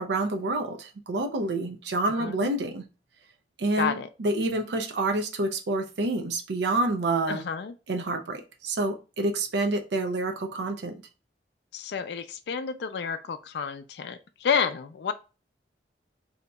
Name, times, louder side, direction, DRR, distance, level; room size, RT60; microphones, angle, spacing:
voice 1, 0.0-2.9 3.6-7.4 7.9-11.0, right 2 dB, 70° right, 0.5 m, -28 dB
voice 2, 2.2-2.5 3.8-4.1 7.3-7.7 11.7-15.1, left 6 dB, 65° left, 0.4 m, -30 dB
2.8 x 2.3 x 3.9 m
head